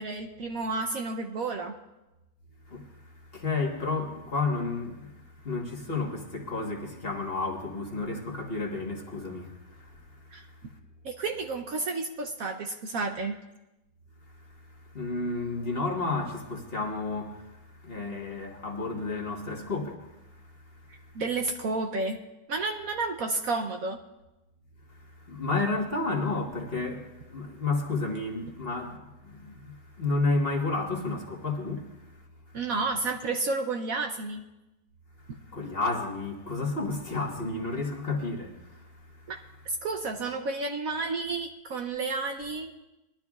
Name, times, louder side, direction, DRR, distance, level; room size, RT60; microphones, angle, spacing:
voice 1, 0.0-1.8 10.3-10.5 11.0-13.4 21.1-22.2 22.5-24.0 32.5-34.4 39.3-39.4 39.8-42.7, right 3 dB, 60° right, 1.1 m, -31 dB
voice 2, 2.7-10.5 14.5-20.6 24.9-32.1 35.3-39.2, left 3 dB, 35° left, 1.5 m, -32 dB
21.0 x 12.0 x 2.4 m
omnidirectional pair, 1.9 m